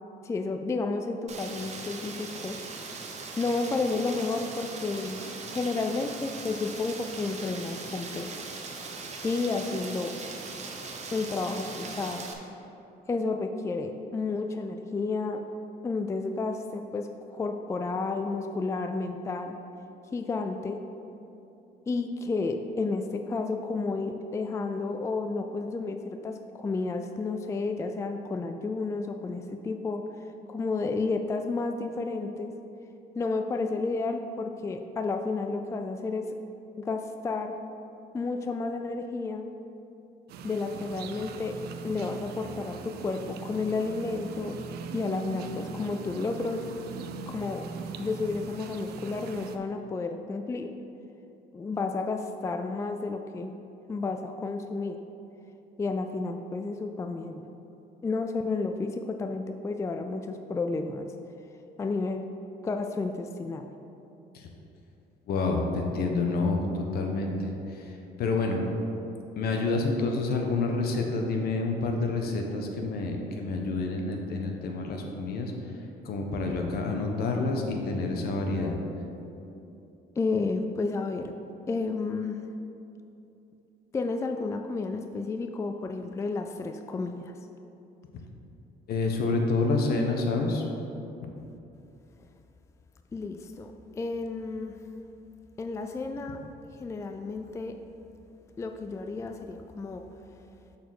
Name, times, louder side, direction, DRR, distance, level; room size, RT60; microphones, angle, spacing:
voice 1, 0.2-2.6 3.4-5.2 5.5-8.5 9.2-10.1 11.1-12.3 13.1-15.4 15.8-19.5 20.1-20.8 21.9-32.5 33.2-36.4 36.8-37.6 38.1-39.5 40.4-41.6 41.8-44.5 44.9-46.6 47.3-47.7 48.0-50.7 51.5-53.5 53.9-55.0 55.8-57.4 58.0-61.1 61.8-62.3 62.6-63.7 80.2-81.3 81.7-82.4 83.9-87.4 93.1-94.8 95.6-96.4 96.8-97.8 98.6-100.1, left 3 dB, 15° left, 6 dB, 0.3 m, -31 dB
Rain, 1.3-12.3, right 4 dB, 40° right, 0.9 m, -40 dB
sound 1, 40.3-49.6, right 5 dB, 70° right, 0.6 m, -41 dB
voice 2, 65.3-68.6 69.4-75.5 76.0-78.8 88.9-90.6, left 3 dB, 65° left, 2 dB, 1.1 m, -28 dB
6.8 x 4.3 x 6.4 m, 2.9 s
cardioid pair, 110°, 17 cm